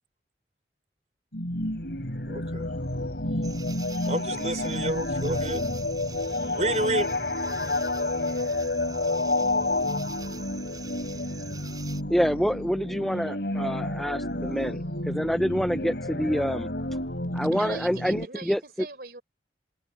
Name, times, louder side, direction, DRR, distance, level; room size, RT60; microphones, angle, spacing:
sound 1, 1.3-18.3, left 2 dB, 70° left, 3.2 m, -30 dB
voice 1, 2.3-2.7 4.1-5.7 6.5-7.1, right 2 dB, 40° right, 5.3 m, -29 dB
sound 2, 3.4-12.0, right 3 dB, 20° right, 4.1 m, -43 dB
voice 2, 12.1-14.8 15.1-16.7 17.3-18.6, equal, ahead, 0.4 m, -26 dB
voice 3, 17.5-19.2, right 4 dB, 60° right, 4.6 m, -40 dB
head